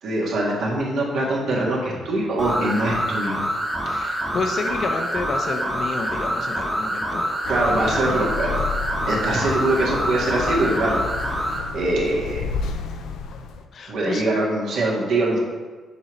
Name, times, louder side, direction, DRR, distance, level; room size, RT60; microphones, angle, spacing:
voice 1, 0.0-3.4 7.5-8.6 9.1-11.0 11.7-12.5 13.9-15.4, right 1 dB, 70° right, -3 dB, 1.5 m, -23 dB
sound 1, 2.4-11.7, equal, 5° right, 1.0 m, -26 dB
voice 2, 3.8-7.3 13.7-14.2, left 4 dB, 55° left, 4 dB, 0.7 m, -30 dB
sound 2, 7.4-13.7, left 5 dB, 80° left, 0.4 m, -31 dB
6.8 x 4.7 x 3.1 m, 1.4 s
cardioid pair, 90°, 0 cm